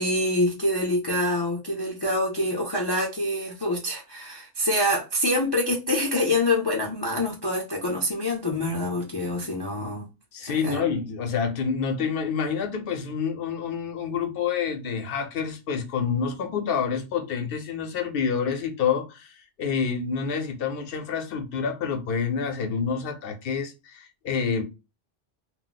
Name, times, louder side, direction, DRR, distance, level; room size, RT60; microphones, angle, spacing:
voice 1, 0.0-10.1 10.5-10.9, left 1 dB, 35° left, 0.4 m, -26 dB
voice 2, 10.3-24.6, left 6 dB, 60° left, 0.7 m, -28 dB
2.3 x 2.0 x 3.8 m
omnidirectional pair, 1.2 m